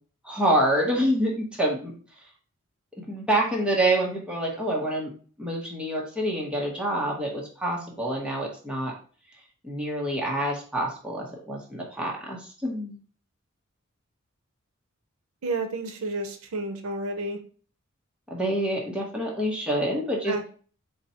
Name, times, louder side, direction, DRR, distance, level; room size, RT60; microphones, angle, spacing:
voice 1, 0.2-1.9 3.1-5.1 5.4-8.9 9.6-13.0 18.3-20.5, right 1 dB, 5° right, -2 dB, 1.0 m, -27 dB
voice 2, 15.4-17.4 20.3-20.5, right 2 dB, 80° right, 6 dB, 0.6 m, -30 dB
4.0 x 2.3 x 4.2 m, 0.42 s
head